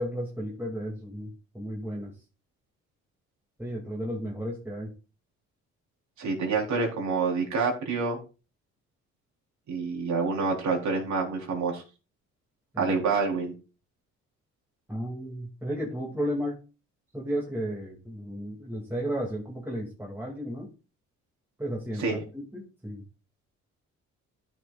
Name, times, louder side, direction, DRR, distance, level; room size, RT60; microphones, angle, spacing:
voice 1, 0.0-2.1 3.6-4.9 12.7-12.9 14.9-16.6 17.1-20.7 21.6-22.2 22.5-23.0, equal, 10° right, -3 dB, 2.4 m, -33 dB
voice 2, 6.2-8.2 9.7-11.8 12.8-13.5 22.0-22.2, right 4 dB, 65° right, 0 dB, 3.9 m, -27 dB
14.0 x 6.4 x 2.4 m, 0.32 s
cardioid pair, 90°, 30 cm